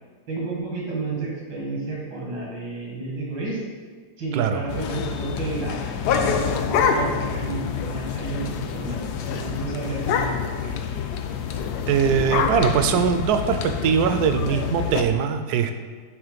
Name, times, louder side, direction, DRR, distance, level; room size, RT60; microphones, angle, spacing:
voice 1, 0.3-3.6 4.2-10.7, right 3 dB, 90° right, -3 dB, 2.4 m, -31 dB
sound 1, 4.7-15.0, left 7 dB, 70° left, 1.1 m, -29 dB
sound 2, 6.1-7.4 7.8-7.9 8.1-8.5 8.8-9.0 9.3-9.4 10.0-10.6 11.5-13.6, left 6 dB, 90° left, 1.3 m, -26 dB
voice 2, 11.9-15.7, right 7 dB, 70° right, 8 dB, 1.0 m, -21 dB
8.1 x 3.3 x 5.1 m, 1.5 s
omnidirectional pair, 1.9 m